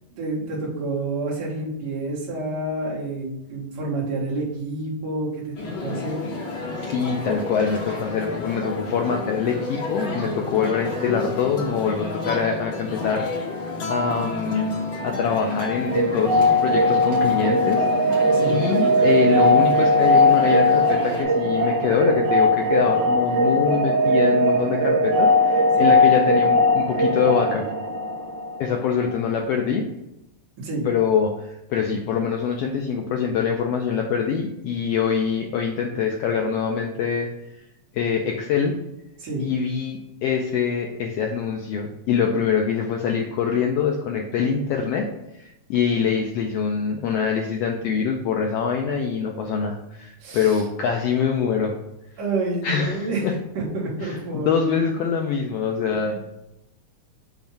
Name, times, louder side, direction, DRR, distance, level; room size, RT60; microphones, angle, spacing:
voice 1, 0.1-6.3 18.3-18.6 25.8-25.9 30.6-30.8 39.2-39.5 50.2-50.6 52.2-53.3 53.5-54.7 56.0-56.2, right 2 dB, 65° right, -7 dB, 3.1 m, -29 dB
sound 1, 5.6-21.2, left 2 dB, 50° left, 1.9 m, -31 dB
voice 2, 6.8-13.3 13.9-14.8 15.0-18.2 18.5-27.7 28.6-29.8 30.8-37.3 37.9-38.7 39.4-45.1 45.3-51.7 52.6-53.3 54.0-56.2, left 6 dB, 85° left, 2 dB, 1.4 m, -24 dB
sound 2, 15.9-28.6, left 1 dB, 90° right, 2.1 m, -19 dB
7.0 x 2.7 x 5.7 m, 0.87 s
omnidirectional pair, 3.4 m